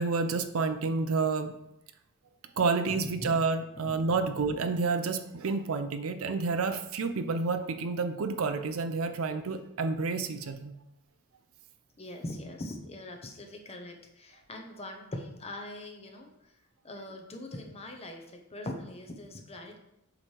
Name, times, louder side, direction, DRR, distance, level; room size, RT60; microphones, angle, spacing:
voice 1, 0.0-1.5 2.6-10.7 17.1-17.2, right 4 dB, 70° right, 8 dB, 0.6 m, -29 dB
voice 2, 2.9-3.4 3.7-4.1 12.0-16.5 16.8-19.8, left 1 dB, 30° left, 3 dB, 0.8 m, -42 dB
7.6 x 3.2 x 4.5 m, 0.82 s
head